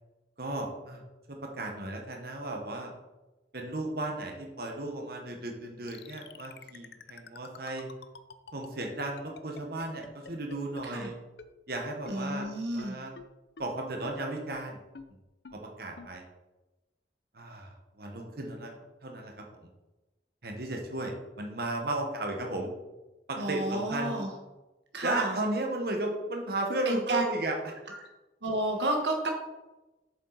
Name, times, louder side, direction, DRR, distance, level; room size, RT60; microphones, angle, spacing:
voice 1, 0.4-1.0 1.3-2.9 3.5-7.9 8.5-11.2 11.7-12.5 12.7-13.1 13.6-14.8 15.5-16.2 17.3-18.7 19.0-19.7 20.4-22.7 23.3-24.2 25.0-27.6, right 2 dB, 60° right, 2 dB, 1.4 m, -35 dB
sound 1, 5.9-11.1 11.4-11.5 11.7-11.8 12.1-12.2 12.4-12.5 12.8-12.9 13.2-13.3 13.6-13.7 14.0-14.1 14.5-14.6 15.0-15.1 15.5-15.6 16.0-16.1, left 4 dB, 65° left, 0.6 m, -46 dB
voice 2, 12.1-13.0 23.4-24.3 24.9-25.4 26.8-27.3 27.9-28.0 28.4-29.3, right 1 dB, 80° right, 2 dB, 1.3 m, -31 dB
8.4 x 7.2 x 4.1 m, 1.1 s
head